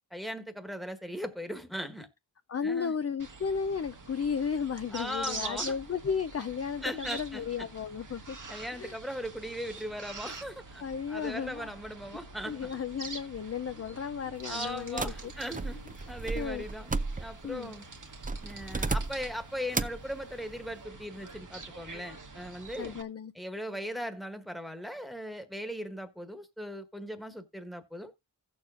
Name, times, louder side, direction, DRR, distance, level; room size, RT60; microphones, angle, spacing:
voice 1, 0.1-2.1 2.6-2.9 4.9-5.8 6.8-7.7 8.5-10.8 11.1-12.7 13.7-13.8 14.2-16.9 17.2-17.9 18.4-22.9 23.3-28.1, equal, ahead, 1.3 m, -39 dB
voice 2, 2.5-8.4 8.7-9.0 10.8-11.7 12.5-15.3 16.3-16.7 17.4-17.7 22.8-23.3, left 6 dB, 35° left, 0.4 m, -34 dB
sound 1, 3.2-23.0, right 3 dB, 45° right, 1.2 m, -45 dB
sound 2, 15.0-17.5 18.2-19.4 19.7-20.1, right 3 dB, 20° right, 0.4 m, -34 dB
16.0 x 7.0 x 2.4 m
wide cardioid pair, 45°, 43 cm